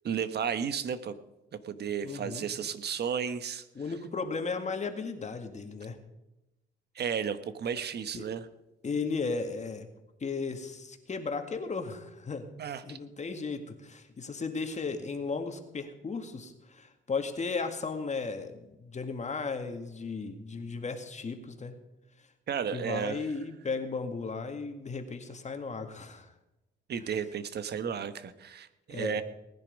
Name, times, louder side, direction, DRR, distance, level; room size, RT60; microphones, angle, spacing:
voice 1, 0.0-1.1 1.6-3.6 6.9-8.5 12.6-13.0 22.5-23.2 26.9-29.2, right 7 dB, 55° right, 12 dB, 1.2 m, -33 dB
voice 2, 2.0-2.5 3.8-6.0 8.2-8.3 8.8-9.9 10.2-12.5 12.8-21.7 22.7-26.3 28.9-29.2, left 4 dB, 35° left, 6 dB, 2.0 m, -35 dB
19.0 x 10.5 x 5.3 m, 0.96 s
cardioid pair, 90°, 20 cm